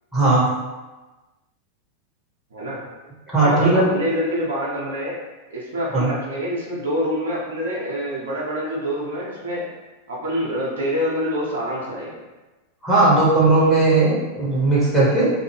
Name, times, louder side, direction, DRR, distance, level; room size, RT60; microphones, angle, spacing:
voice 1, 0.1-0.5 3.3-3.8 5.9-6.1 12.8-15.3, right 2 dB, 5° left, -10 dB, 1.3 m, -17 dB
voice 2, 3.4-5.2 5.5-9.6 10.1-12.2, equal, 65° right, -5 dB, 0.7 m, -26 dB
2.6 x 2.1 x 3.3 m, 1.2 s
figure-of-eight pair, 90°, 0 cm